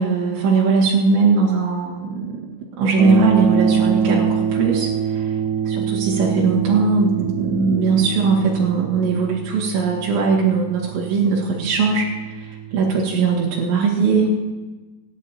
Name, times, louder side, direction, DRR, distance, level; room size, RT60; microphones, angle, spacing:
voice 1, 0.0-2.5 2.8-5.4 5.7-12.1 12.4-14.4, right 4 dB, 85° right, -5 dB, 4.2 m, -19 dB
sound 1, 3.0-13.1, right 7 dB, 70° right, 2.2 m, -25 dB
25.5 x 10.5 x 2.9 m, 1.2 s
omnidirectional pair, 5.1 m